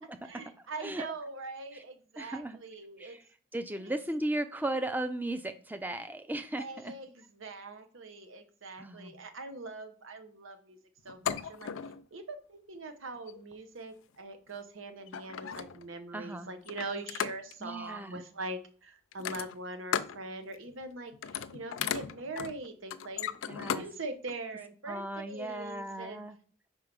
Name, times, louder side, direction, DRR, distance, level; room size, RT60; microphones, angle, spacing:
voice 1, 0.0-3.2 3.8-3.9 6.6-10.8 11.0-11.7 12.1-26.2, right 2 dB, 85° right, 8 dB, 0.9 m, -42 dB
voice 2, 2.2-2.6 3.0-3.2 3.5-6.9 8.8-9.1 16.1-16.5 17.6-18.2 23.5-23.8 24.9-26.4, right 1 dB, 10° right, 9 dB, 0.5 m, -36 dB
sound 1, 11.1-12.0 13.1-13.4 14.5-14.6 15.0-15.9 16.7-17.6 19.1-20.2 20.5-20.8 21.1-23.9 24.3-24.4, left 8 dB, 90° left, 0.5 m, -36 dB
5.4 x 4.6 x 5.2 m, 0.43 s
head